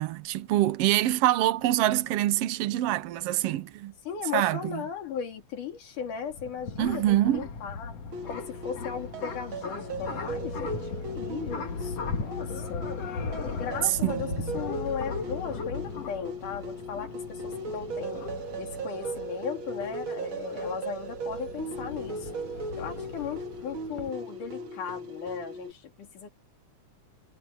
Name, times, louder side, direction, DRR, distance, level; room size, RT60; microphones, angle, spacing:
voice 1, 0.0-3.9 4.3-4.8 6.8-7.4 14.0-14.5, right 14 dB, 70° right, 1.4 m, -25 dB
voice 2, 4.0-8.0 8.2-13.0 13.5-18.2 18.6-22.3 22.8-26.3, left 7 dB, 75° left, 4.5 m, -37 dB
sound 1, 6.0-24.1, left 4 dB, 55° left, 3.1 m, -38 dB
sound 2, 8.1-25.7, right 2 dB, 40° right, 2.6 m, -38 dB
omnidirectional pair, 3.7 m